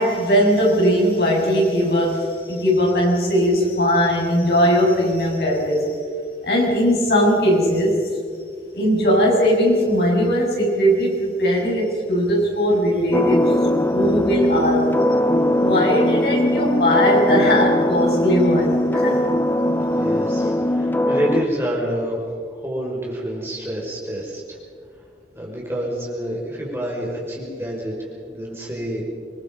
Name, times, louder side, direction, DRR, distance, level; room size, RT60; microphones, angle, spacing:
voice 1, 0.0-6.0 6.4-8.0 8.7-13.6 13.9-14.8 15.6-19.2, equal, 65° left, -2 dB, 6.9 m, -19 dB
sound 1, 13.1-21.4, left 1 dB, 10° left, 0.6 m, -20 dB
voice 2, 19.9-22.2 22.5-24.6 25.4-29.0, equal, 15° right, -3 dB, 5.5 m, -28 dB
26.5 x 20.5 x 5.4 m, 2.2 s
head